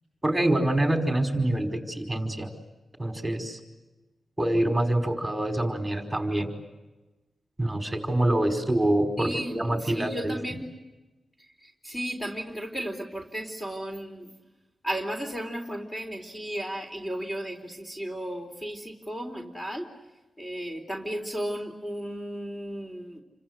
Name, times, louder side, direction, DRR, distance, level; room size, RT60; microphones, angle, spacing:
voice 1, 0.2-2.5 3.0-3.6 4.4-6.5 7.6-10.4, right 1 dB, 10° right, 5 dB, 5.0 m, -26 dB
voice 2, 9.2-10.7 11.8-14.3 14.8-19.9 20.4-23.2, equal, 15° left, 4 dB, 4.0 m, -34 dB
29.0 x 25.0 x 8.1 m, 1.1 s
wide cardioid pair, 95°, 0 cm